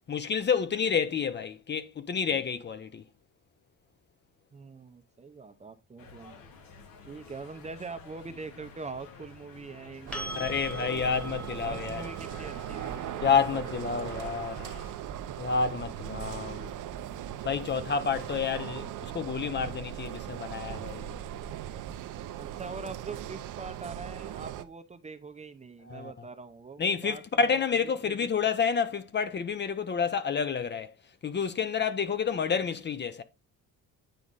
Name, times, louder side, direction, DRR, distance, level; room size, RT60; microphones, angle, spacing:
voice 1, 0.1-3.0 10.3-12.0 13.2-14.7 15.4-16.7 17.4-21.1 25.9-26.1 26.8-30.9 31.2-33.2, left 6 dB, 30° left, 0.8 m, -29 dB
voice 2, 4.5-6.4 7.0-11.1 11.6-13.1 22.4-27.6 28.1-28.5, right 4 dB, 20° right, 0.7 m, -43 dB
sound 1, 6.0-14.9, left 5 dB, 80° left, 2.4 m, -50 dB
sound 2, 10.1-17.9 20.8-20.9, equal, 5° left, 1.4 m, -45 dB
sound 3, 10.1-24.6, right 11 dB, 65° right, 0.8 m, -39 dB
9.3 x 4.9 x 4.1 m
cardioid pair, 130°, 34 cm